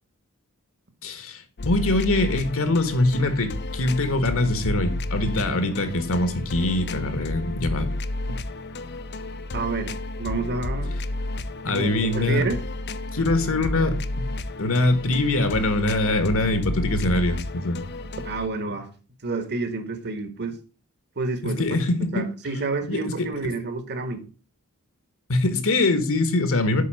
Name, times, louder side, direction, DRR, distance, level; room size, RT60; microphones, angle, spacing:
voice 1, 1.0-7.9 11.6-12.4 13.1-14.3 14.6-17.8 21.4-22.3 22.9-23.5 25.3-26.8, left 2 dB, 65° left, 1.6 m, -23 dB
sound 1, 1.6-18.5, left 2 dB, 50° left, 0.6 m, -32 dB
voice 2, 9.5-10.9 11.7-12.6 18.2-18.9 19.2-20.6 21.2-21.6 22.0-24.3, right 3 dB, 50° right, 1.5 m, -29 dB
8.4 x 5.4 x 5.4 m
head